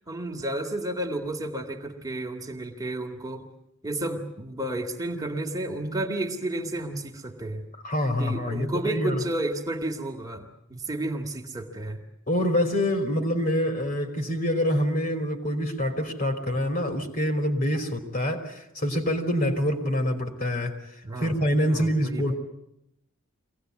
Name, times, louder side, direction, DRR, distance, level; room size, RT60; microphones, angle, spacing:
voice 1, 0.1-3.5 3.8-7.7 8.2-12.0 21.0-21.4 21.7-22.3, right 1 dB, 20° right, 3 dB, 2.1 m, -32 dB
voice 2, 7.8-9.2 12.3-20.8 21.2-22.4, equal, 45° left, 5 dB, 3.3 m, -26 dB
24.5 x 18.5 x 9.5 m, 0.82 s
head